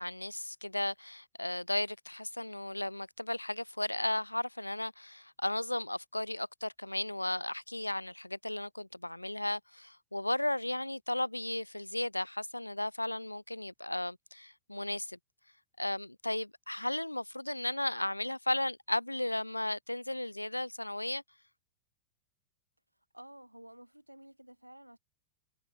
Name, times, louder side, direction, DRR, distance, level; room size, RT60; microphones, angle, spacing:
voice 1, 0.0-15.2 15.8-21.2, left 1 dB, 85° left, 0.4 m, -35 dB
voice 2, 23.1-25.0, right 1 dB, 90° right, 2.9 m, -52 dB
figure-of-eight pair, 90°, 0 cm